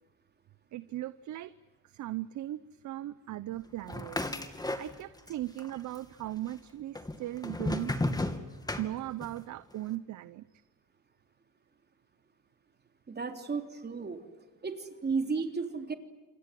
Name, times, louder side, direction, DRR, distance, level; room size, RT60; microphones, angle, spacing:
voice 1, 0.7-1.5 1.9-4.2 4.8-7.9 8.8-10.4, right 14 dB, 75° right, 15 dB, 0.8 m, -38 dB
sound 1, 3.9-5.3 5.6-6.3 7.0-9.4, left 2 dB, 15° left, 2.6 m, -34 dB
voice 2, 13.1-14.2 14.6-14.8 15.0-15.9, right 4 dB, 35° right, 5 dB, 3.6 m, -33 dB
28.5 x 23.0 x 7.7 m, 1.3 s
cardioid pair, 90°, 30 cm